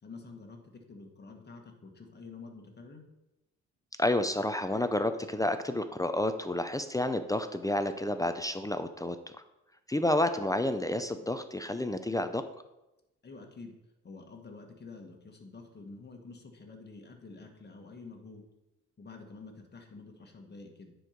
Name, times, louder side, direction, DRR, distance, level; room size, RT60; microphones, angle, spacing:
voice 1, 0.0-3.0 13.2-13.7 14.0-18.4 19.0-20.9, left 3 dB, 35° left, 3 dB, 1.7 m, -48 dB
voice 2, 4.0-9.2 9.9-12.4, left 1 dB, 10° left, 9 dB, 0.5 m, -30 dB
9.9 x 4.6 x 5.2 m, 0.95 s
cardioid pair, 90°, 30 cm